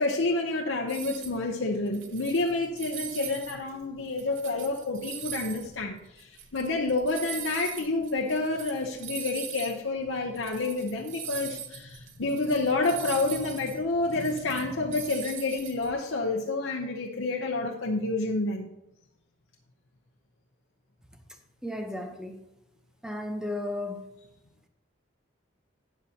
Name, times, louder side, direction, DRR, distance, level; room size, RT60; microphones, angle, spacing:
voice 1, 0.0-18.7, left 2 dB, 80° left, 0 dB, 0.8 m, -29 dB
sound 1, 0.9-1.4 1.8-3.5 4.0-9.7 10.1-10.2 10.4-15.9, right 8 dB, 75° right, 1.0 m, -41 dB
voice 2, 21.6-22.4 23.0-24.0, left 1 dB, 5° right, 5 dB, 0.8 m, -34 dB
12.5 x 8.2 x 2.9 m, 0.87 s
head